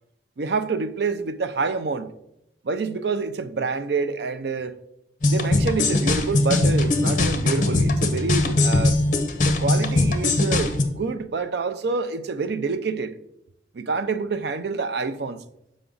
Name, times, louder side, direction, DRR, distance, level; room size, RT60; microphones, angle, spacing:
voice 1, 0.4-2.1 2.6-4.8 5.2-9.0 9.4-13.1 13.7-15.4, right 4 dB, 65° right, 0.4 m, -27 dB
sound 1, 5.2-10.8, left 2 dB, 45° left, 0.8 m, -21 dB
6.8 x 5.1 x 3.8 m
head